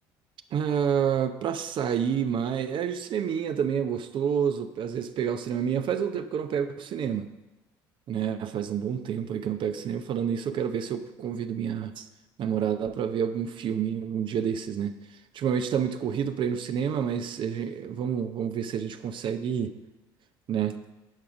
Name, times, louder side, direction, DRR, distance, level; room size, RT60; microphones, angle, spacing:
voice 1, 0.5-7.3 8.1-12.1 12.4-14.9 15.3-19.7 20.5-20.8, right 8 dB, 55° right, 9 dB, 0.7 m, -28 dB
11.0 x 5.0 x 5.9 m, 1.0 s
hypercardioid pair, 70°, 10 cm